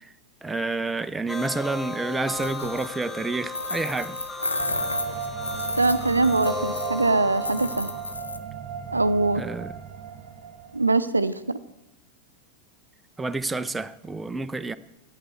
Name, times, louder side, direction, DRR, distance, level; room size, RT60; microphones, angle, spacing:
voice 1, 0.4-4.2 9.3-9.7 13.2-14.8, right 3 dB, 10° right, 0.5 m, -29 dB
sound 1, 1.3-8.1, left 3 dB, 10° left, 1.1 m, -36 dB
sound 2, 2.3-3.0 3.5-7.1 7.3-8.4, left 2 dB, 80° left, 0.6 m, -32 dB
sound 3, 4.6-11.1, right 8 dB, 45° right, 1.2 m, -36 dB
voice 2, 5.8-7.9 8.9-9.4 10.7-11.6, right 3 dB, 80° right, 0.5 m, -22 dB
9.2 x 8.8 x 8.2 m
figure-of-eight pair, 90°, 0 cm